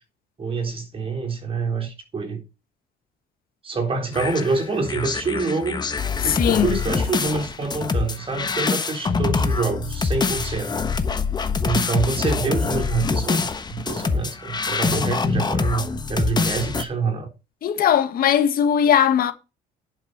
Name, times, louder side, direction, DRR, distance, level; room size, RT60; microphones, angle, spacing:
voice 1, 0.4-2.4 3.6-5.8 6.2-10.8 11.6-17.3, right 4 dB, 30° right, 3.8 m, -26 dB
sound 1, 4.1-16.8, left 4 dB, 25° left, 1.2 m, -25 dB
voice 2, 6.2-6.8 17.6-19.3, left 9 dB, 60° left, 1.7 m, -19 dB
10.5 x 6.1 x 6.8 m
cardioid pair, 110°, 17 cm